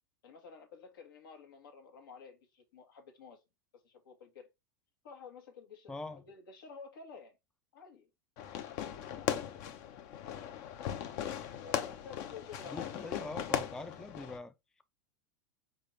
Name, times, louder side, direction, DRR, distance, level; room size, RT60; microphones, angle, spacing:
voice 1, 0.2-3.4 3.8-4.5 5.0-7.4 7.7-8.1 8.8-9.3 11.6-13.3, left 5 dB, 80° left, 1.4 m, -52 dB
voice 2, 5.9-6.2 12.7-14.5, left 2 dB, 5° left, 0.4 m, -43 dB
Fireworks, 8.4-14.4, left 10 dB, 55° left, 0.8 m, -38 dB
4.3 x 3.5 x 3.2 m
hypercardioid pair, 105°, 11 cm